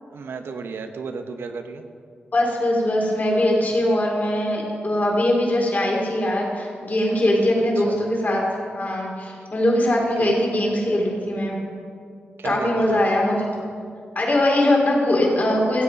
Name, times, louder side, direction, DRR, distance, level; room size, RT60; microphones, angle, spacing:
voice 1, 0.1-1.8 7.8-8.0 10.0-10.3 12.4-13.0, right 4 dB, 85° right, 6 dB, 0.9 m, -33 dB
voice 2, 2.3-8.4 8.7-11.6 12.4-13.7 14.2-15.8, left 1 dB, 50° left, -2 dB, 3.6 m, -21 dB
15.5 x 8.5 x 5.3 m, 2.2 s
cardioid pair, 65°, 4 cm